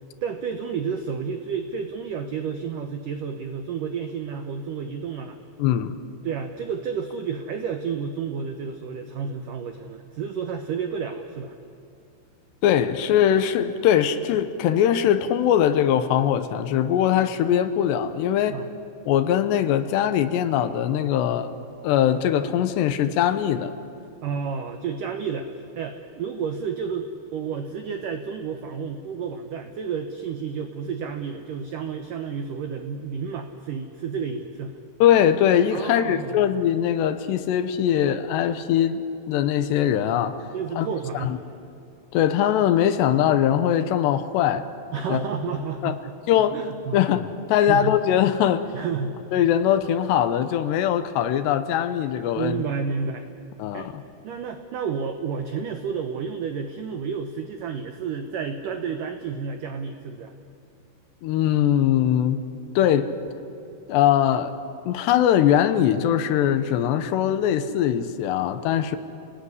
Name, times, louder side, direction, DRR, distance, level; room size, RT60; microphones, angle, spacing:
voice 1, 0.2-5.4 6.2-11.6 18.5-18.7 24.2-34.7 35.7-36.4 40.5-41.4 44.9-46.2 46.5-47.0 47.6-48.0 48.7-49.2 52.4-53.3 53.7-53.9 54.2-60.3, right 6 dB, 85° right, 7 dB, 1.8 m, -31 dB
voice 2, 5.6-6.0 12.6-18.6 19.1-21.5 21.8-23.7 35.0-40.4 40.8-40.9 41.2-41.4 42.1-44.7 45.1-45.2 45.8-46.0 46.3-46.6 46.9-48.7 49.3-52.6 53.6-54.0 61.2-62.4 62.8-63.1 63.9-64.5 64.9-69.0, left 10 dB, 75° left, 11 dB, 2.9 m, -21 dB
29.5 x 19.0 x 9.7 m, 2.6 s
omnidirectional pair, 5.5 m